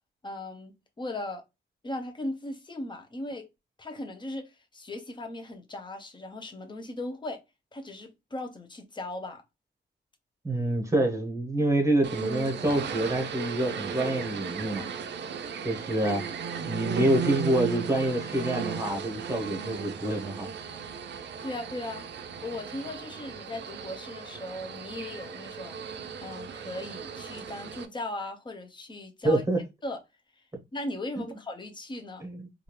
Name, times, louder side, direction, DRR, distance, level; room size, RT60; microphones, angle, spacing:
voice 1, 0.2-1.4 1.8-3.5 3.8-7.4 7.7-9.4 21.4-22.1 22.4-25.8 26.2-29.4 29.8-30.0 30.7-32.3, left 1 dB, 25° left, 0.6 m, -38 dB
voice 2, 10.4-14.9 15.6-16.2 16.7-20.5 29.2-29.6 31.2-31.4 32.2-32.6, right 1 dB, 15° right, 0.9 m, -27 dB
sound 1, 12.0-27.9, right 6 dB, 65° right, 0.4 m, -36 dB
3.4 x 2.4 x 2.9 m
wide cardioid pair, 155°, 20 cm